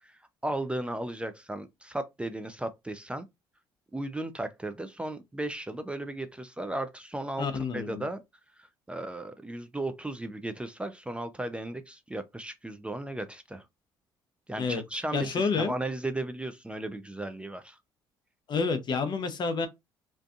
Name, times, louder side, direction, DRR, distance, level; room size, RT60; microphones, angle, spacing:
voice 1, 0.0-3.3 3.9-8.2 8.6-13.7 14.5-17.8, right 1 dB, 10° right, 0.4 m, -35 dB
voice 2, 7.4-8.0 14.6-14.8 15.1-15.7 18.5-19.7, left 4 dB, 45° left, 0.7 m, -29 dB
2.5 x 2.4 x 2.4 m
supercardioid pair, 70°, 10 cm